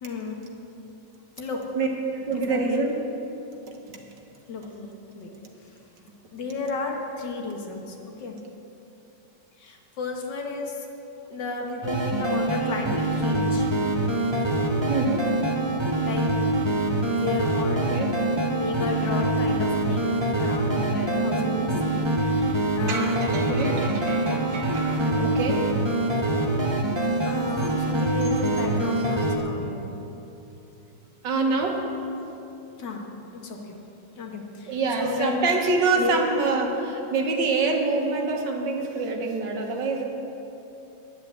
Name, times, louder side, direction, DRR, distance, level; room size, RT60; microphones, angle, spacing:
voice 1, 0.0-0.4 1.4-1.7 2.5-2.8 4.5-4.9 5.1-5.3 5.6-5.7 6.3-8.4 9.6-10.9 11.3-13.7 16.0-17.8 18.5-23.2 27.3-29.9 32.8-33.1 33.3-33.8 34.2-35.5 35.9-36.3, left 3 dB, 75° left, 1 dB, 2.0 m, -33 dB
voice 2, 2.1-3.0 14.9-15.3 17.9-18.1 21.3-21.8 22.9-26.5 31.2-31.8 34.7-40.0, right 3 dB, 80° right, 1 dB, 1.9 m, -26 dB
sound 1, 11.8-29.4, right 1 dB, 25° right, 0.5 m, -25 dB
10.5 x 7.5 x 8.3 m, 3.0 s
omnidirectional pair, 1.9 m